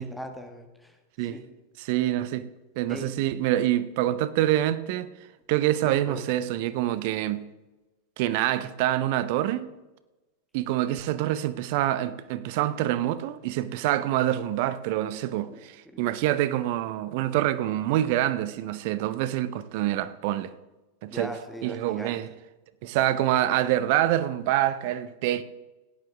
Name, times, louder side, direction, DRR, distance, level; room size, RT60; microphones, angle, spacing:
voice 1, 0.0-1.4 2.9-3.1 5.8-6.2 15.4-15.6 15.9-16.0 21.1-22.2, equal, ahead, 1.8 m, -40 dB
voice 2, 1.8-2.5 2.8-5.1 5.5-7.4 8.2-9.7 10.5-15.7 16.0-20.5 21.0-21.3 21.6-22.3 22.8-25.4, right 13 dB, 50° right, 0.7 m, -26 dB
16.5 x 10.5 x 3.5 m
figure-of-eight pair, 90°, 0 cm